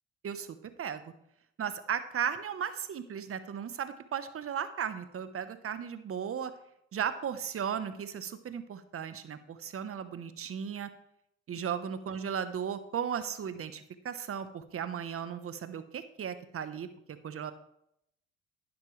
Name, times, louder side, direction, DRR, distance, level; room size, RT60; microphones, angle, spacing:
voice 1, 0.2-1.1 1.6-6.5 6.9-10.9 11.5-17.5, right 8 dB, 40° right, 11 dB, 1.1 m, -36 dB
11.5 x 9.6 x 3.3 m, 0.76 s
supercardioid pair, 70°, 33 cm